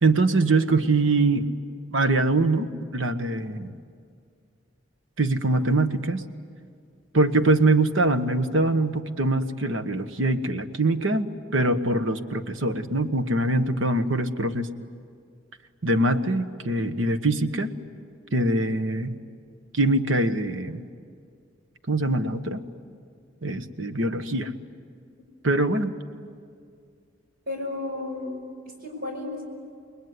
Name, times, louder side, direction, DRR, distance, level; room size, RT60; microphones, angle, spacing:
voice 1, 0.0-1.5 1.9-3.8 5.2-6.2 7.1-14.7 15.8-17.7 18.3-19.2 19.7-20.8 21.9-22.6 23.4-24.5 25.4-25.9, right 2 dB, 75° right, 9 dB, 1.3 m, -23 dB
voice 2, 27.5-28.3 28.8-29.4, left 2 dB, 50° right, 1 dB, 5.5 m, -32 dB
29.0 x 21.0 x 9.6 m, 2.2 s
head